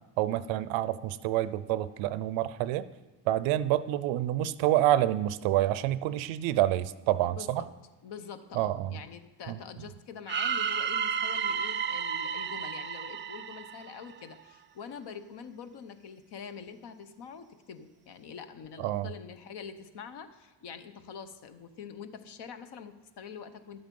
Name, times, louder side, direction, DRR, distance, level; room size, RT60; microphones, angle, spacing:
voice 1, 0.2-2.9 3.3-7.7 8.5-9.0 9.5-9.6 18.8-19.1, right 13 dB, 90° right, 16 dB, 0.6 m, -28 dB
voice 2, 7.2-7.7 8.0-23.8, left 6 dB, 60° left, 10 dB, 1.0 m, -45 dB
sound 1, 10.3-14.3, right 7 dB, 25° right, 0.4 m, -32 dB
11.5 x 7.9 x 5.3 m, 1.1 s
cardioid pair, 100°, 45 cm